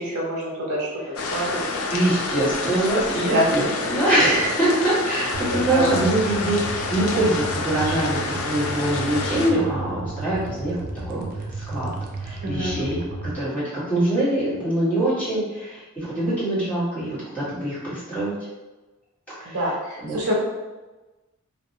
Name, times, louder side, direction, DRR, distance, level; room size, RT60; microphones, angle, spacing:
voice 1, 0.0-1.6 3.2-3.5 5.5-5.9 12.4-12.8 19.5-20.3, equal, 75° right, -3 dB, 0.7 m, -26 dB
sound 1, 1.2-9.5, left 3 dB, 70° left, 0.3 m, -29 dB
voice 2, 1.9-10.8 11.0-11.2 11.5-11.9 12.2-13.0 13.3-18.3 19.4-19.8 20.0-20.2, right 1 dB, 5° left, -13 dB, 1.3 m, -24 dB
sound 2, 5.3-13.3, right 2 dB, 40° right, 0.3 m, -33 dB
2.5 x 2.0 x 2.7 m, 1.2 s
head